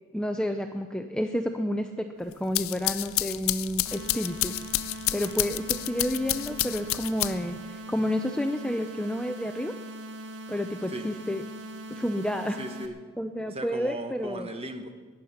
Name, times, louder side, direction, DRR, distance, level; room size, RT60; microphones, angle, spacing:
voice 1, 0.1-4.5 5.1-9.7 10.5-11.4 11.9-12.6 13.2-14.5, equal, 5° left, 5 dB, 0.6 m, -30 dB
sound 1, 2.3-7.6, left 15 dB, 65° left, 0.4 m, -30 dB
sound 2, 3.9-12.9, right 1 dB, 55° right, 1.4 m, -41 dB
voice 2, 12.6-12.9 13.5-14.9, right 1 dB, 25° right, 5 dB, 1.3 m, -37 dB
20.0 x 10.0 x 5.8 m, 1.4 s
head